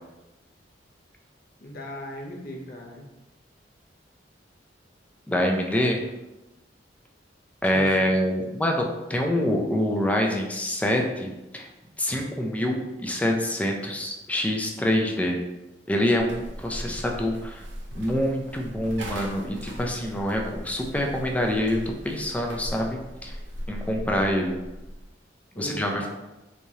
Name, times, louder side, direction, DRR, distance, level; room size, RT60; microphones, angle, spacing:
voice 1, 1.6-3.1 7.7-8.2 25.5-26.1, equal, 55° left, 0 dB, 0.6 m, -38 dB
voice 2, 5.3-6.0 7.6-11.7 12.0-15.4 15.9-17.6 18.0-23.4 23.7-24.6 25.6-26.1, left 1 dB, 10° left, 1 dB, 0.4 m, -26 dB
Walking up stairs from basement to ground floor, 16.2-25.1, equal, 85° right, 0.6 m, -39 dB
3.5 x 3.1 x 2.7 m, 1.0 s
head